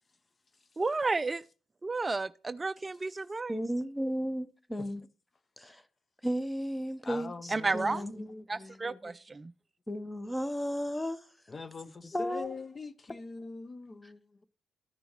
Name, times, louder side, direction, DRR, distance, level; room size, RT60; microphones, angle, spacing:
voice 1, 0.8-1.4 1.8-3.6 7.5-8.0 8.5-9.5, right 3 dB, 25° right, 0.3 m, -32 dB
voice 2, 3.5-5.0 5.6-5.8 6.2-8.3 9.9-11.3 12.1-12.5 14.0-14.1, equal, 10° left, 0.9 m, -34 dB
voice 3, 7.0-9.1 11.5-14.4, left 4 dB, 35° left, 0.6 m, -43 dB
13.5 x 6.2 x 3.1 m
hypercardioid pair, 55°, 0 cm